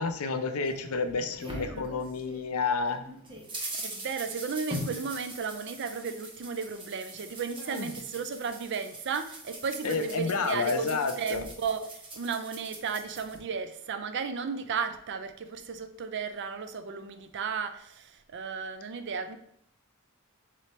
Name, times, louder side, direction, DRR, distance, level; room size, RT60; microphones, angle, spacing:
voice 1, 0.0-3.0 7.7-7.9 9.8-11.4, left 4 dB, 75° left, 8 dB, 0.5 m, -30 dB
sound 1, 0.6-2.5 2.9-13.4, right 1 dB, 25° right, 0.9 m, -42 dB
voice 2, 1.5-1.9 3.7-19.4, right 5 dB, 55° right, 9 dB, 0.4 m, -34 dB
3.8 x 3.2 x 4.2 m, 0.72 s
head